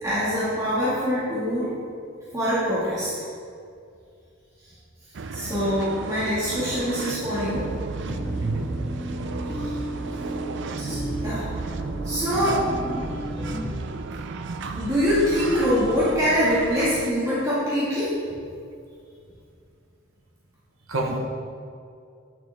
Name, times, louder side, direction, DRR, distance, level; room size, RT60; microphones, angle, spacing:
voice 1, 0.0-1.7 2.3-3.2 5.3-7.6 9.6-9.8 10.8-11.0 11.2-11.4 12.0-12.6 14.7-18.1, equal, 15° right, -11 dB, 1.9 m, -24 dB
sound 1, 5.1-17.1, right 3 dB, 55° right, 0.4 m, -33 dB
sound 2, 8.1-13.7, equal, 5° left, 0.5 m, -34 dB
voice 2, 8.4-8.7 13.0-13.2 20.9-21.2, right 2 dB, 75° right, 2 dB, 1.1 m, -28 dB
9.3 x 7.4 x 3.5 m, 2.4 s
head